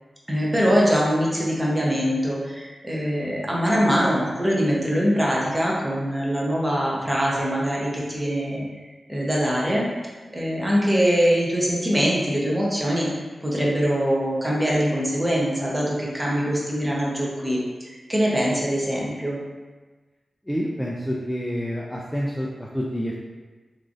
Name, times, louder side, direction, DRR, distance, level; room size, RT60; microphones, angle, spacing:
voice 1, 0.3-8.7 9.1-9.9 10.3-19.4, equal, 20° right, -4 dB, 0.7 m, -23 dB
voice 2, 20.5-23.2, equal, 5° left, -4 dB, 0.3 m, -28 dB
3.0 x 2.5 x 2.5 m, 1.3 s
cardioid pair, 60°, 0 cm